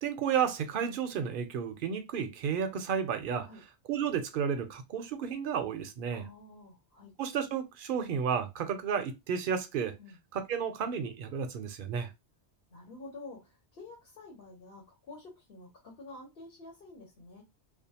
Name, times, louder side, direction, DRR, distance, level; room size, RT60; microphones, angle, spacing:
voice 1, 0.0-3.5 3.9-6.3 7.2-9.9 10.3-12.1, right 7 dB, 60° right, 0.6 m, -32 dB
voice 2, 6.1-7.1 10.0-10.2 12.7-17.4, left 2 dB, 60° left, 1.2 m, -49 dB
2.5 x 2.3 x 2.8 m
omnidirectional pair, 1.1 m